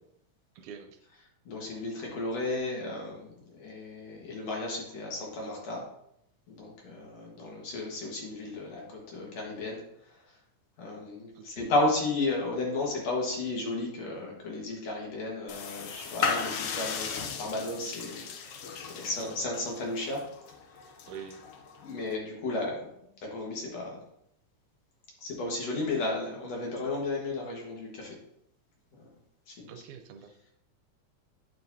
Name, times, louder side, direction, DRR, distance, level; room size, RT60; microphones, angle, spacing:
voice 1, 0.6-1.0 11.4-11.7 19.2-19.3 21.1-21.4 29.7-30.3, right 7 dB, 80° right, 6 dB, 2.1 m, -45 dB
voice 2, 1.5-5.9 6.5-10.2 10.8-20.3 21.8-22.9 23.2-24.0 25.2-28.2 28.9-29.1 29.5-29.7, left 2 dB, 60° left, -2 dB, 2.5 m, -33 dB
sound 1, 15.5-22.1, left 6 dB, 80° left, 1.3 m, -36 dB
9.0 x 6.7 x 2.7 m, 0.75 s
omnidirectional pair, 3.5 m